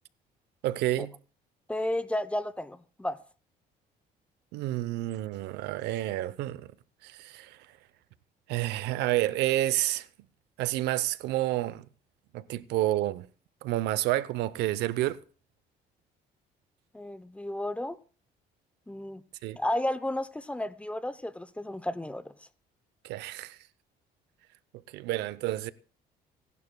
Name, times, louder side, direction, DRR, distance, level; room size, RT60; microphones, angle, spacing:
voice 1, 0.6-1.1 4.5-6.7 7.0-7.6 8.5-10.1 10.6-11.8 12.3-13.3 13.6-15.2 19.4-19.6 23.0-23.6 24.9-25.7, right 15 dB, 85° right, 0.7 m, -29 dB
voice 2, 1.7-3.2 16.9-18.0 18.9-19.2 19.6-22.3, left 1 dB, 5° left, 0.6 m, -32 dB
25.5 x 11.0 x 2.2 m
cardioid pair, 110°, 17 cm